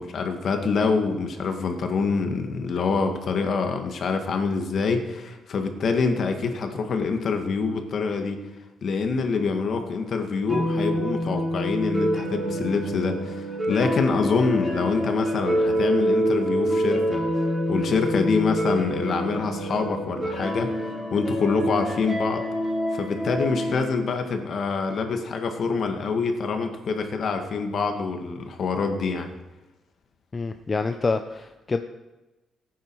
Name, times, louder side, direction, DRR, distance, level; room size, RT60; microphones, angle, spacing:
voice 1, 0.0-8.4 8.8-17.2 17.7-22.5 22.9-29.3, left 4 dB, 55° left, 5 dB, 1.9 m, -26 dB
sound 1, 10.5-23.7, equal, 10° right, 3.7 m, -26 dB
voice 2, 30.3-31.8, left 4 dB, 30° left, 8 dB, 0.7 m, -27 dB
16.5 x 9.5 x 4.8 m, 1.1 s
cardioid pair, 90°, 0 cm